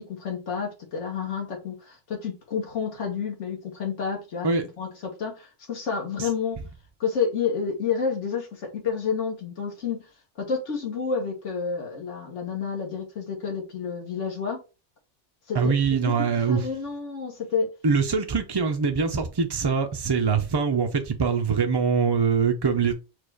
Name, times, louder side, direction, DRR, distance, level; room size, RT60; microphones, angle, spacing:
voice 1, 0.0-4.5 4.8-6.6 7.0-10.0 10.4-14.6 15.5-17.7, left 6 dB, 80° left, 1.6 m, -30 dB
voice 2, 15.5-16.7 17.8-22.9, right 5 dB, 40° right, 0.3 m, -23 dB
4.7 x 2.3 x 4.7 m
omnidirectional pair, 1.2 m